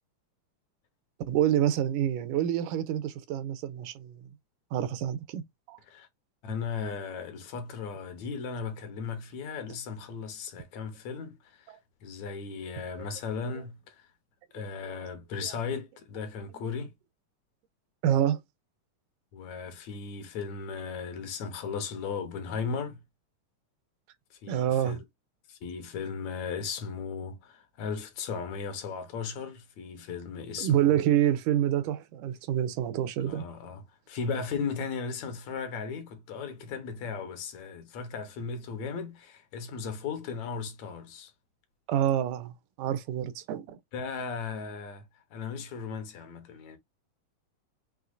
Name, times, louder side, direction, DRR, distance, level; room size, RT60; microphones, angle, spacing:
voice 1, 1.3-4.2 4.7-5.4 5.7-5.8 11.7-11.8 13.0-13.1 15.4-15.5 16.5-16.7 18.0-18.4 24.5-25.0 30.6-33.5 41.9-42.5 42.8-43.8, right 11 dB, 90° right, 2.2 m, -27 dB
voice 2, 6.4-11.7 12.0-14.1 14.5-16.9 19.3-23.0 24.3-25.0 25.5-31.0 33.2-41.3 43.9-46.8, left 5 dB, 70° left, 2.1 m, -36 dB
6.2 x 2.8 x 2.5 m
omnidirectional pair, 3.5 m